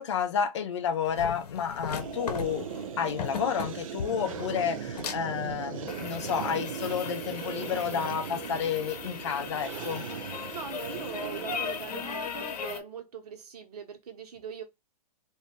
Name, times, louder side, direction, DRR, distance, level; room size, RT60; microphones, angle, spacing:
voice 1, 0.0-2.7 3.0-10.1, left 7 dB, 50° left, 0.6 m, -31 dB
sound 1, 1.1-12.8, left 6 dB, 75° left, 0.8 m, -38 dB
sound 2, 1.9-12.3, right 7 dB, 55° right, 0.6 m, -38 dB
voice 2, 10.5-14.6, right 6 dB, 80° right, 1.2 m, -40 dB
3.4 x 2.6 x 2.8 m
hypercardioid pair, 175°, 20 cm